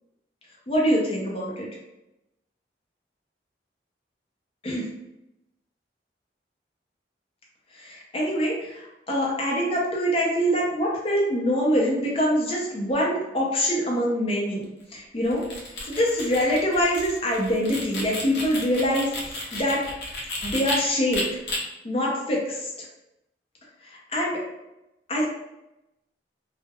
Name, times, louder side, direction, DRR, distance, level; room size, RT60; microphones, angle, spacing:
voice 1, 0.7-1.7 4.6-4.9 7.7-15.4 15.8-19.8 20.4-21.4 21.8-22.7 23.8-24.4 25.1-25.3, equal, 30° left, -3 dB, 0.5 m, -25 dB
sound 1, 15.2-20.8 21.1-21.6, left 2 dB, 75° left, 0.6 m, -33 dB
2.3 x 2.0 x 2.8 m, 0.92 s
head